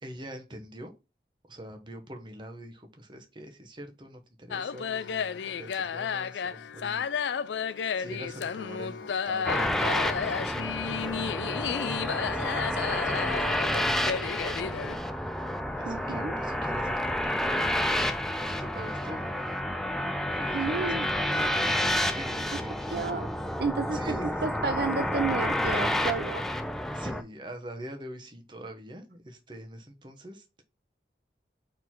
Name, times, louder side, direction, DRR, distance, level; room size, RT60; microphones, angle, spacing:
voice 1, 0.0-0.9 1.5-7.2 7.9-15.0 15.8-17.9 18.3-19.3 20.3-23.0 23.9-24.6 26.9-30.6, right 1 dB, 25° right, 1.0 m, -44 dB
sound 1, 4.5-15.0, left 7 dB, 85° left, 0.4 m, -32 dB
sound 2, 9.4-27.2, left 1 dB, ahead, 0.4 m, -30 dB
voice 2, 15.9-16.3 20.5-21.1 22.9-23.3 23.6-24.0 24.4-26.4, right 4 dB, 60° right, 0.4 m, -31 dB
4.6 x 3.9 x 5.7 m
head